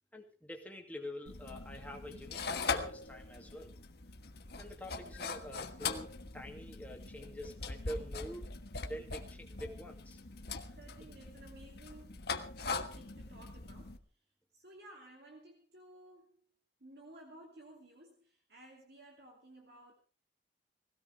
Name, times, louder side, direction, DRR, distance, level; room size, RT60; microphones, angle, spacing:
voice 1, 0.1-3.8 4.6-8.5 8.8-10.2, equal, 10° left, 2 dB, 2.5 m, -46 dB
sound 1, 1.3-14.0, left 4 dB, 60° left, 1.4 m, -41 dB
voice 2, 7.1-7.6 10.3-10.5 10.8-12.3 12.7-14.0 14.5-16.5 16.8-19.9, right 1 dB, 60° right, 0 dB, 2.9 m, -56 dB
20.0 x 17.0 x 3.5 m, 0.35 s
head